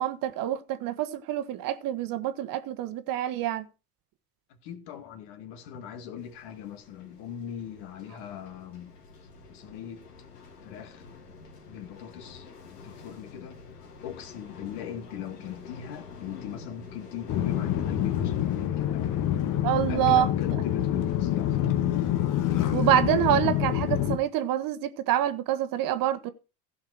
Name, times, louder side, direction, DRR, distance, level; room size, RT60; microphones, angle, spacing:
voice 1, 0.0-3.6 19.6-20.3 22.7-26.3, right 12 dB, 45° right, 1.1 m, -26 dB
voice 2, 4.6-9.0 9.5-10.0 10.6-11.1 11.7-12.5 12.8-13.6 14.0-19.3 19.9-21.8, left 9 dB, 55° left, 2.0 m, -40 dB
sound 1, 6.2-18.7, left 5 dB, 75° left, 3.2 m, -47 dB
sound 2, 17.3-24.2, left 11 dB, 40° left, 1.5 m, -26 dB
15.5 x 5.7 x 4.7 m
hypercardioid pair, 85°, 46 cm